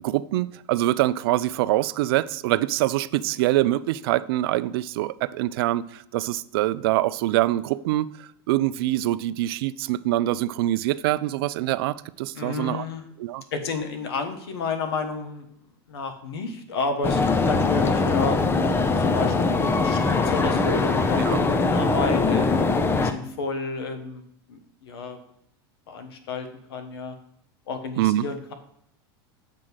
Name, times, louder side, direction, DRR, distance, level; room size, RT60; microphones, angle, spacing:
voice 1, 0.0-12.8 13.2-13.4 21.3-21.4 28.0-28.3, right 15 dB, 70° right, 0.4 m, -24 dB
voice 2, 12.3-13.1 13.5-15.5 15.9-17.2 17.5-18.4 19.0-22.6 23.0-24.2 24.5-25.2 25.9-27.2 27.7-28.5, left 4 dB, 85° left, 1.3 m, -31 dB
sound 1, 17.0-23.1, left 3 dB, 20° left, 0.6 m, -22 dB
7.5 x 3.7 x 6.2 m
supercardioid pair, 115°, 13 cm